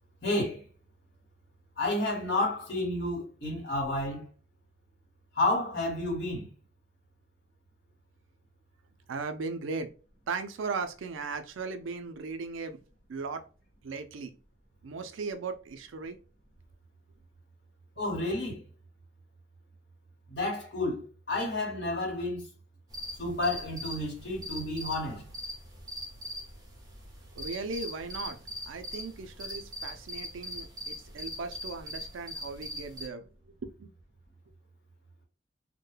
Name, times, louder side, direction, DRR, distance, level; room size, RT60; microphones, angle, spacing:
voice 1, 0.2-0.6 1.8-4.3 5.4-6.5 18.0-18.6 20.3-22.5 23.2-25.2, left 2 dB, 55° left, 1.1 m, -30 dB
voice 2, 9.1-9.9 10.3-12.8 13.1-13.4 13.8-14.3 14.8-16.2 27.4-33.9, right 4 dB, 90° right, 0.4 m, -37 dB
sound 1, 22.9-33.1, equal, 20° right, 0.7 m, -41 dB
2.2 x 2.1 x 3.1 m
head